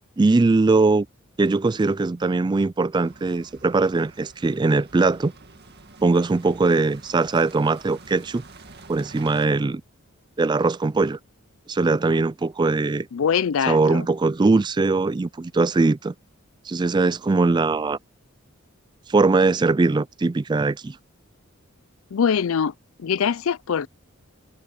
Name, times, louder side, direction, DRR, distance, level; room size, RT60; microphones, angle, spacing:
voice 1, 0.2-1.1 1.4-5.3 6.0-8.4 8.9-9.8 10.4-11.2 11.7-13.1 13.7-16.1 16.7-18.0 19.1-21.0, right 3 dB, 20° right, 0.3 m, -21 dB
sound 1, 3.0-9.5, right 3 dB, 50° right, 2.1 m, -47 dB
voice 2, 13.1-14.1 22.1-22.7 23.0-23.9, left 7 dB, 75° left, 0.4 m, -23 dB
head